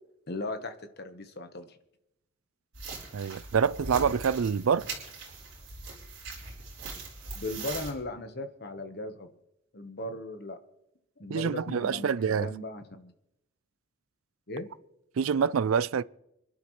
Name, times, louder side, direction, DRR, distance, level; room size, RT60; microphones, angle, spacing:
voice 1, 0.3-1.8 7.3-9.3 9.7-10.6 11.2-13.1 14.5-14.7, left 2 dB, 50° left, 1.3 m, -37 dB
sound 1, 2.7-7.9, right 3 dB, 55° right, 4.5 m, -41 dB
voice 2, 3.1-4.9 11.3-12.5 15.2-16.0, right 6 dB, 75° right, 0.4 m, -26 dB
27.0 x 11.5 x 3.2 m
head